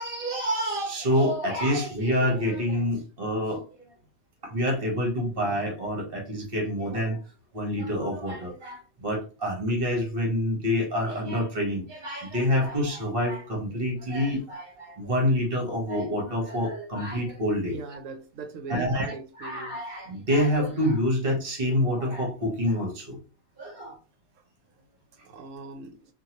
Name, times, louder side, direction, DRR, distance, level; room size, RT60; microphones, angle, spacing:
voice 1, 0.0-3.8 4.4-7.2 7.5-18.0 18.7-23.2 23.6-24.0, equal, 45° right, 1.1 m, -27 dB
voice 2, 17.6-19.8 25.2-26.0, right 4 dB, 70° right, 0.9 m, -40 dB
2.7 x 2.5 x 2.8 m
omnidirectional pair, 1.5 m